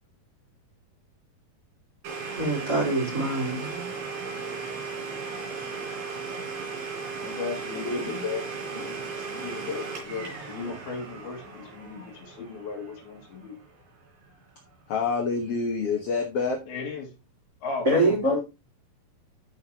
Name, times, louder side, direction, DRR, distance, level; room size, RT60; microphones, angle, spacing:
Domestic sounds home sounds, 2.0-13.7, right 4 dB, 80° right, 5.1 m, -36 dB
voice 1, 2.3-3.9 17.8-18.4, right 2 dB, 25° right, -2 dB, 3.8 m, -25 dB
voice 2, 7.2-8.9 9.3-13.6 16.7-17.1 17.6-18.4, left 5 dB, 85° left, 2 dB, 3.9 m, -35 dB
voice 3, 7.8-8.2 8.8-9.2 14.9-16.6, left 4 dB, 60° left, 1 dB, 1.7 m, -28 dB
13.0 x 5.4 x 2.9 m, 0.26 s
omnidirectional pair, 4.3 m